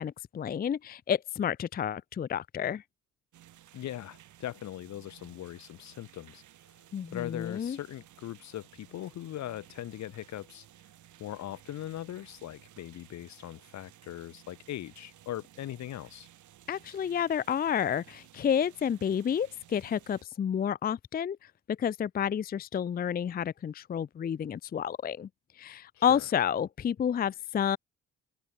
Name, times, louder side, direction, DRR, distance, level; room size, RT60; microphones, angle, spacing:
voice 1, 0.0-2.8 6.9-7.8 16.7-25.3 25.6-27.8, left 8 dB, 30° left, 0.5 m, -30 dB
sound 1, 3.3-20.2, right 12 dB, 75° right, 4.1 m, -57 dB
voice 2, 3.7-6.4 7.1-10.6 11.2-16.3 25.9-26.2, left 12 dB, 65° left, 1.0 m, -40 dB
cardioid pair, 90°, 30 cm